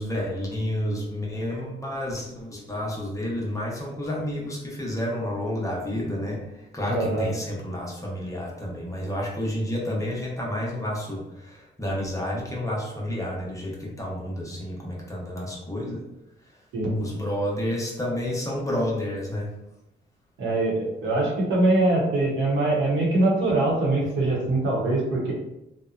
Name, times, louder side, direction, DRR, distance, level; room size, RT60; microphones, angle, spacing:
voice 1, 0.0-16.0 17.0-19.5, left 1 dB, 15° left, -4 dB, 0.7 m, -30 dB
voice 2, 6.9-7.3 16.7-16.9 20.4-25.3, right 2 dB, 80° right, -3 dB, 0.9 m, -23 dB
2.8 x 2.1 x 2.4 m, 0.90 s
cardioid pair, 95°, 20 cm